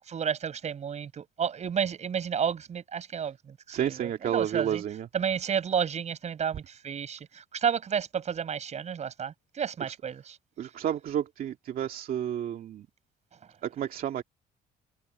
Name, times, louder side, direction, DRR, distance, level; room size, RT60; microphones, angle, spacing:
voice 1, 0.0-4.8 5.1-10.4, right 7 dB, 40° right, 6.6 m, -31 dB
voice 2, 3.7-5.1 10.6-12.9 13.6-14.2, right 10 dB, 60° right, 2.3 m, -31 dB
cardioid pair, 110°, 17 cm